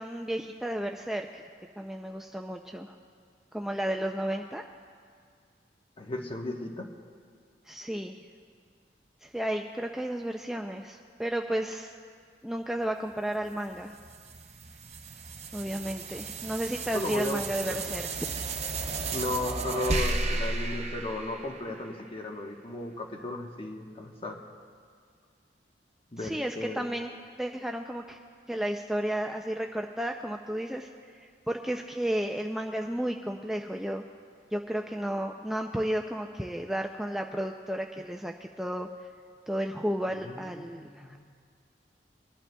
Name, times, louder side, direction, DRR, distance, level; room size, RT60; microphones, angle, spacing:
voice 1, 0.0-1.5 1.8-2.9 3.5-4.6 7.7-8.2 9.2-11.9 12.4-14.0 15.5-18.3 26.2-27.1 27.4-28.2 28.5-30.9 31.2-34.0 34.5-38.9 39.5-41.2, right 1 dB, ahead, 2 dB, 0.3 m, -33 dB
voice 2, 6.0-6.9 16.9-17.9 19.1-24.4 26.1-26.8 40.1-41.2, left 2 dB, 30° left, 2 dB, 1.0 m, -35 dB
sound 1, 13.5-22.1, right 3 dB, 40° right, 0.7 m, -34 dB
24.0 x 11.5 x 2.2 m, 2.1 s
head